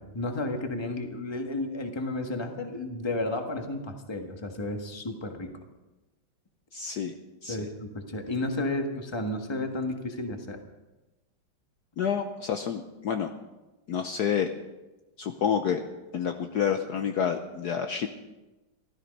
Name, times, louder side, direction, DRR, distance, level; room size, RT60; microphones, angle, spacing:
voice 1, 0.0-5.5 7.5-10.6, left 2 dB, 15° left, 4 dB, 1.3 m, -32 dB
voice 2, 6.7-7.1 7.4-7.6 12.0-13.3 13.9-14.5 15.2-15.8 16.1-18.1, left 7 dB, 65° left, 6 dB, 1.2 m, -28 dB
16.0 x 13.0 x 5.3 m, 1.1 s
omnidirectional pair, 2.1 m